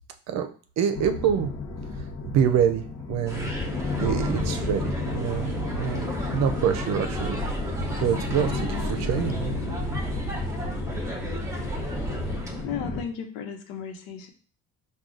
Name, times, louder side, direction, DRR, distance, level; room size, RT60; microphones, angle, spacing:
voice 1, 0.8-1.5 2.3-3.5 4.0-5.5 5.8-7.4 7.7-9.5, right 8 dB, 55° right, 7 dB, 0.7 m, -26 dB
sound 1, 0.9-13.0, left 3 dB, 40° left, 0.9 m, -33 dB
sound 2, 3.2-12.6, right 1 dB, 10° right, 1.0 m, -35 dB
sound 3, 3.3-12.4, left 1 dB, 10° left, 0.6 m, -34 dB
voice 2, 12.6-14.3, left 7 dB, 80° left, 5 dB, 1.0 m, -34 dB
4.7 x 2.4 x 3.8 m, 0.42 s
supercardioid pair, 105°, 32 cm